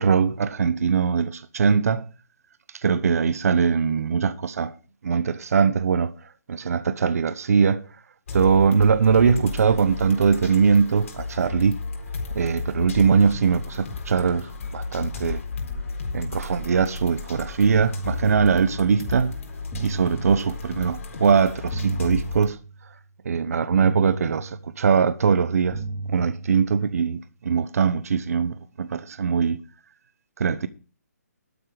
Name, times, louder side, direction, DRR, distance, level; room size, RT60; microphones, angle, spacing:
voice 1, 0.0-2.1 2.8-4.7 5.0-7.8 8.3-11.8 12.3-15.4 16.1-19.4 19.8-22.6 23.2-25.8 26.1-29.6 30.4-30.7, right 6 dB, 60° right, 0.9 m, -21 dB
sound 1, 8.3-22.5, left 4 dB, 55° left, 4.1 m, -34 dB
sound 2, 17.7-18.9 19.7-20.9 21.7-22.9 23.7-24.9 25.7-26.9, right 3 dB, 20° left, 4.4 m, -35 dB
12.0 x 9.9 x 4.8 m
hypercardioid pair, 160°, 9 cm